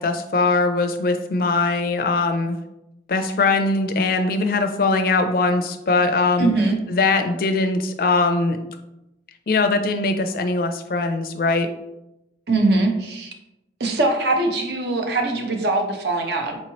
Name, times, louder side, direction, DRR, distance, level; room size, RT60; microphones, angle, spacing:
voice 1, 0.0-2.6 3.1-6.5 6.9-8.6 9.5-11.7, left 3 dB, 50° left, 7 dB, 0.4 m, -21 dB
voice 2, 6.4-6.8 12.5-13.3 13.8-16.6, right 2 dB, 70° right, 3 dB, 0.6 m, -21 dB
4.5 x 3.0 x 2.8 m, 0.90 s
head